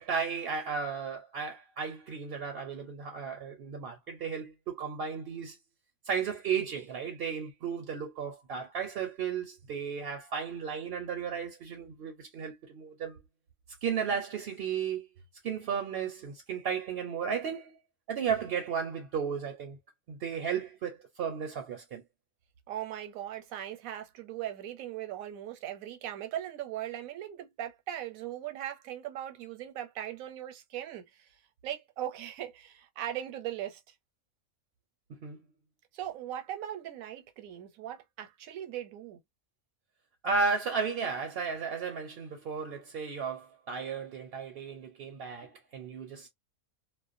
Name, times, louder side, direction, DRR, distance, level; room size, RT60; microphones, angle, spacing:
voice 1, 0.0-5.6 6.1-13.2 13.8-15.1 15.4-17.8 18.1-19.8 20.1-22.0 35.1-35.4 40.2-46.3, right 6 dB, 60° right, 0.7 m, -34 dB
voice 2, 22.7-31.3 31.6-33.8 35.9-39.2, right 11 dB, 80° right, 1.1 m, -39 dB
2.4 x 2.1 x 2.5 m
omnidirectional pair, 1.4 m